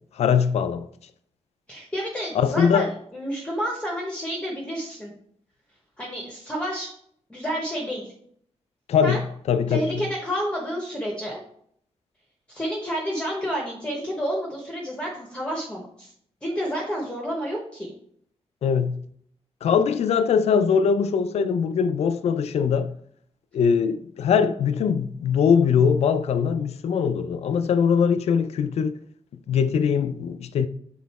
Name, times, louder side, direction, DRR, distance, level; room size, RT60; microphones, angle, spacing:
voice 1, 0.1-0.9 2.3-2.9 8.9-10.1 18.6-19.0 19.6-22.9 23.5-29.0 29.5-30.7, left 6 dB, 70° left, 0.4 m, -22 dB
voice 2, 1.7-2.9 3.1-5.1 6.0-6.9 7.3-8.1 9.0-9.2 9.7-11.4 12.5-16.1 16.4-17.9, equal, 10° left, 1.0 m, -29 dB
6.2 x 3.8 x 4.1 m
wide cardioid pair, 160°, 11 cm